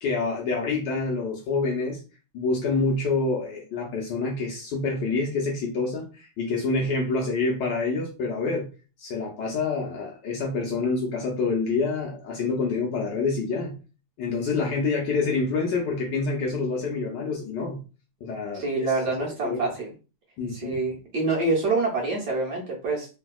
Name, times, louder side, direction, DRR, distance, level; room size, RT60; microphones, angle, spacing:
voice 1, 0.0-2.0 2.3-8.7 9.0-13.8 14.2-17.8 18.2-18.7 19.2-19.7 20.4-20.8, left 3 dB, 70° left, 0 dB, 1.1 m, -27 dB
voice 2, 18.5-19.9 20.5-23.1, right 3 dB, 60° right, -2 dB, 1.2 m, -26 dB
3.2 x 2.7 x 2.2 m, 0.33 s
omnidirectional pair, 2.3 m